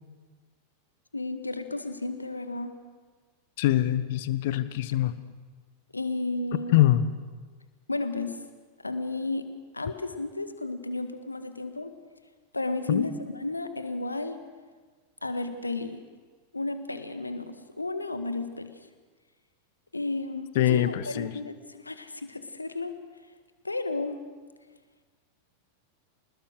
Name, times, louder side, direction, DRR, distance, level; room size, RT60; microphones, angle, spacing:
voice 1, 1.1-2.7 5.9-6.7 7.9-8.4 8.8-9.5 9.7-11.9 12.5-14.4 15.2-16.0 16.5-18.7 19.9-22.9 23.6-24.2, left 2 dB, 80° left, 8 dB, 1.7 m, -33 dB
voice 2, 3.6-5.2 6.7-7.1 12.9-13.1 20.5-21.3, left 13 dB, 50° left, 14 dB, 1.2 m, -23 dB
26.0 x 20.5 x 6.6 m, 1.5 s
figure-of-eight pair, 90°, 0 cm